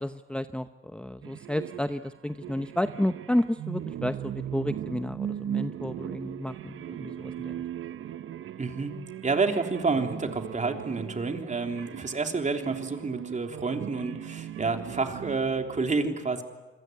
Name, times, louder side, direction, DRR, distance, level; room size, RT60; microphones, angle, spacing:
voice 1, 0.0-7.6, left 1 dB, 5° left, 9 dB, 0.8 m, -31 dB
sound 1, 1.2-15.8, right 10 dB, 70° right, 0.9 m, -38 dB
voice 2, 8.6-8.9 9.2-16.4, right 4 dB, 35° right, 5 dB, 3.4 m, -29 dB
28.0 x 22.0 x 9.5 m, 1.2 s
cardioid pair, 80°, 21 cm